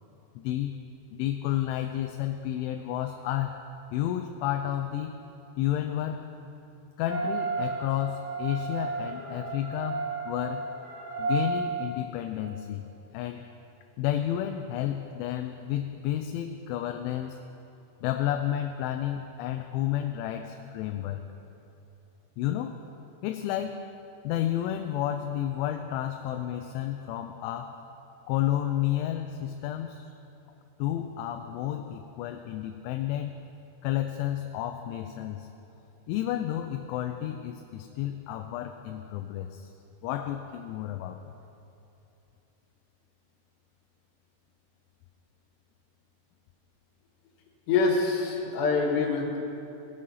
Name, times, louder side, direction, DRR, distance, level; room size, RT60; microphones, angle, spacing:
voice 1, 0.4-0.8 1.1-3.6 3.9-5.2 5.6-6.3 7.0-10.7 11.2-12.9 13.1-13.5 14.0-17.4 18.0-21.2 22.4-22.8 23.2-23.9 24.2-27.8 28.3-30.1 30.8-33.4 33.8-35.5 36.1-39.7 40.0-41.3, left 12 dB, 85° left, 6 dB, 2.9 m, -31 dB
sound 1, 7.0-11.5, right 4 dB, 45° right, 3.0 m, -33 dB
voice 2, 47.7-49.4, left 4 dB, 65° left, -1 dB, 3.6 m, -25 dB
19.0 x 7.6 x 5.6 m, 2.8 s
omnidirectional pair, 5.6 m